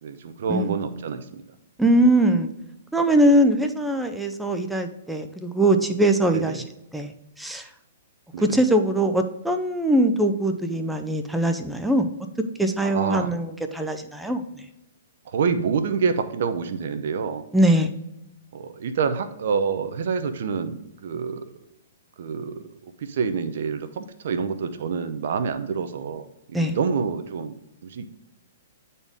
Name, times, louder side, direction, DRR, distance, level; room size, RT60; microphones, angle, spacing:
voice 1, 0.0-1.4 6.3-6.6 8.3-8.6 12.8-13.3 15.3-17.4 18.5-21.5 22.2-22.6 23.0-26.2 26.5-27.5 27.8-28.1, right 5 dB, 65° right, 9 dB, 0.7 m, -27 dB
voice 2, 1.8-2.5 2.9-6.6 6.9-7.1 7.4-7.6 8.4-12.1 12.6-14.4 17.5-17.9 26.5-26.8, right 1 dB, 5° right, 5 dB, 0.5 m, -21 dB
8.6 x 4.2 x 3.5 m, 0.88 s
hypercardioid pair, 150°, 0 cm